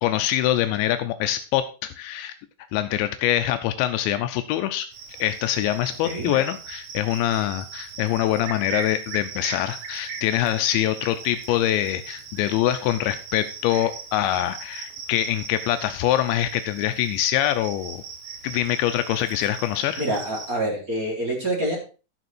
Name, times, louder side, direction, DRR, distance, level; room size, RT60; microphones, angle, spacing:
voice 1, 0.0-2.3 2.7-4.9 5.2-18.0 18.4-20.0, left 12 dB, 85° left, 9 dB, 2.9 m, -24 dB
Cricket, 4.9-20.5, right 5 dB, 75° right, 3.7 m, -39 dB
voice 2, 6.0-6.3 20.0-21.8, right 1 dB, 20° right, -3 dB, 3.9 m, -26 dB
12.0 x 6.7 x 4.5 m, 0.34 s
omnidirectional pair, 5.2 m